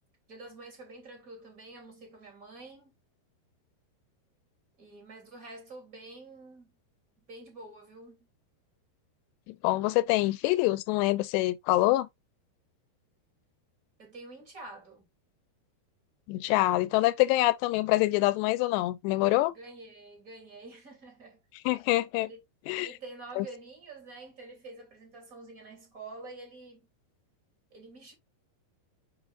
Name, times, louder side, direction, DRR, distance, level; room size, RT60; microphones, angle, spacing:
voice 1, 0.3-2.9 4.8-6.7 7.3-8.3 14.0-15.1 19.5-21.4 22.2-22.4 22.8-26.9 27.7-28.1, right 2 dB, 20° right, 2.8 m, -47 dB
voice 2, 9.5-12.1 16.3-19.5 21.7-22.3 22.7-22.9 23.4-23.5, left 18 dB, 80° left, 2.8 m, -25 dB
7.2 x 5.5 x 2.5 m
omnidirectional pair, 5.2 m